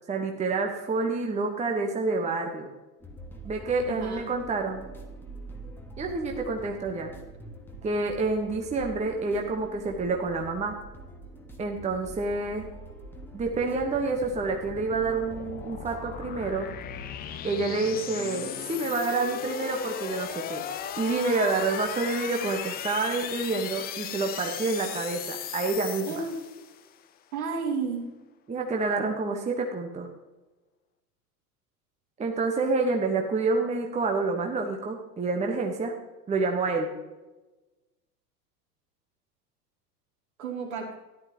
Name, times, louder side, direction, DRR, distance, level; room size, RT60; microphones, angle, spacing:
voice 1, 0.1-2.7 3.4-4.8 6.0-7.1 7.8-10.7 11.6-12.7 13.3-16.7 17.4-20.6 21.0-26.1 28.5-30.1 32.2-35.9 36.3-36.9, right 3 dB, 15° right, 2 dB, 1.2 m, -28 dB
sound 1, 3.0-17.4, right 2 dB, 5° left, 1.3 m, -45 dB
voice 2, 3.9-4.3 26.1-26.4 27.3-28.1 40.4-40.9, right 4 dB, 60° right, 0 dB, 3.0 m, -32 dB
sound 2, 12.4-26.9, left 10 dB, 20° left, 0.6 m, -37 dB
13.5 x 11.0 x 3.0 m, 1.1 s
figure-of-eight pair, 90°, 48 cm